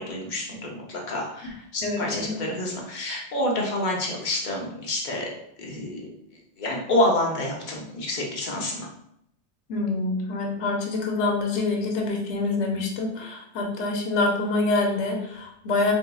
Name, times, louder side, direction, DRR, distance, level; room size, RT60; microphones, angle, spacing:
voice 1, 0.0-5.3 5.6-6.1 6.6-8.9, left 1 dB, 50° left, -1 dB, 0.8 m, -28 dB
voice 2, 1.8-2.3 9.7-15.9, left 3 dB, 80° left, 1 dB, 0.9 m, -26 dB
3.9 x 2.6 x 2.3 m, 0.74 s
omnidirectional pair, 1.2 m